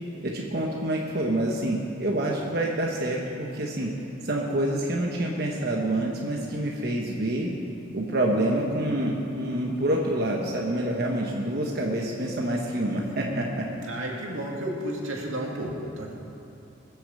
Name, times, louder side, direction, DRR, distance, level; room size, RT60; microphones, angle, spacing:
voice 1, 0.2-3.9 4.2-7.5 7.9-13.7, right 1 dB, 50° right, -1 dB, 1.3 m, -27 dB
voice 2, 13.8-16.1, right 1 dB, 90° right, -1 dB, 2.6 m, -32 dB
20.5 x 7.1 x 7.5 m, 2.8 s
head